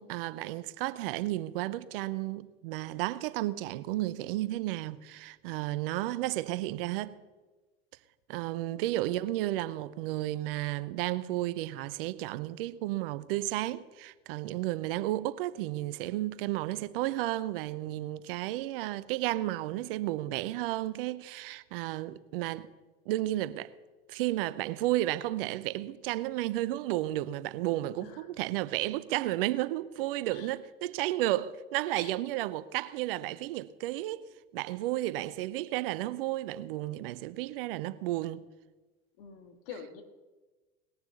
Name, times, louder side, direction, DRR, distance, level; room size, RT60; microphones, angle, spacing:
voice 1, 0.0-7.2 8.3-22.7 23.1-23.7 24.1-34.2 34.5-38.5, right 16 dB, 65° right, 0.7 m, -32 dB
voice 2, 28.0-28.3 30.3-30.6 31.9-32.1 39.2-40.0, left 7 dB, 65° left, 1.9 m, -47 dB
19.0 x 6.9 x 6.9 m
hypercardioid pair, 75°, 30 cm